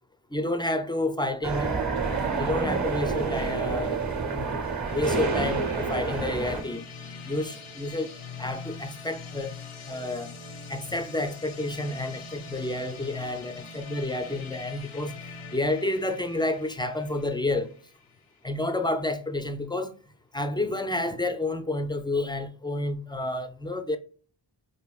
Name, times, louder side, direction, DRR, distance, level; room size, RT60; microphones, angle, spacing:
voice 1, 0.3-1.7 2.3-4.0 4.3-4.5 4.9-6.8 7.3-8.1 8.4-9.6 9.9-10.3 10.7-15.1 15.5-17.7 18.4-19.9 20.3-24.0, left 2 dB, 10° left, 0.3 m, -30 dB
sound 1, 1.4-6.6, right 4 dB, 35° right, 1.0 m, -28 dB
Artificial Chill, 4.9-18.6, left 5 dB, 90° left, 0.7 m, -43 dB
4.7 x 2.6 x 2.3 m
wide cardioid pair, 55°, 48 cm